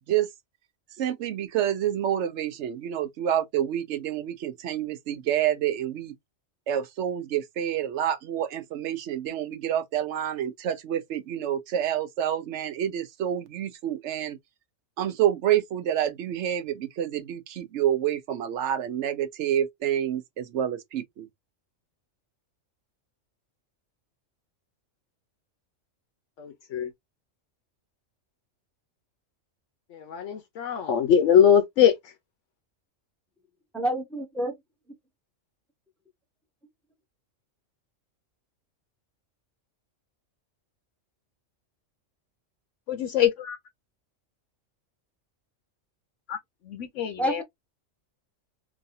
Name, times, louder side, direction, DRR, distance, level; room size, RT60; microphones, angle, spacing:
voice 1, 1.0-6.1 6.7-14.4 15.0-21.3, right 10 dB, 70° right, 0.8 m, -28 dB
voice 2, 26.4-26.9 29.9-32.0 42.9-43.6 46.3-46.4 46.7-47.4, left 8 dB, 70° left, 0.9 m, -22 dB
voice 3, 33.7-34.5 47.2-47.4, equal, ahead, 0.6 m, -28 dB
3.1 x 2.6 x 2.6 m
omnidirectional pair, 1.3 m